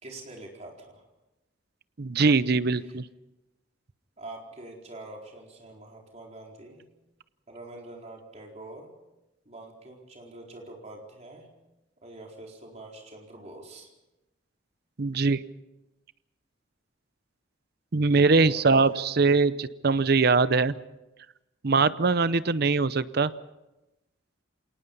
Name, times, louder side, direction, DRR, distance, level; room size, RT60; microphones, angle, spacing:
voice 1, 0.0-1.0 2.8-3.0 4.2-6.8 7.5-8.9 9.4-11.5 12.0-13.9 18.3-19.0, right 2 dB, 35° right, 0 dB, 4.4 m, -45 dB
voice 2, 2.0-3.1 15.0-15.4 17.9-20.7 21.6-23.3, right 4 dB, 55° right, 15 dB, 0.7 m, -22 dB
27.0 x 18.5 x 5.5 m, 0.99 s
head